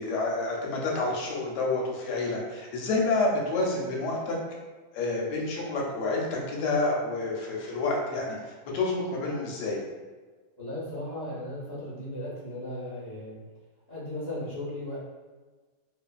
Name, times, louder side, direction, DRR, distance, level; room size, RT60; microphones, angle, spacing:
voice 1, 0.0-4.4 4.9-9.8, left 2 dB, 80° left, -2 dB, 1.2 m, -29 dB
voice 2, 10.6-13.4 13.9-15.0, left 1 dB, 60° left, -11 dB, 0.4 m, -36 dB
2.9 x 2.5 x 2.2 m, 1.3 s
omnidirectional pair, 1.9 m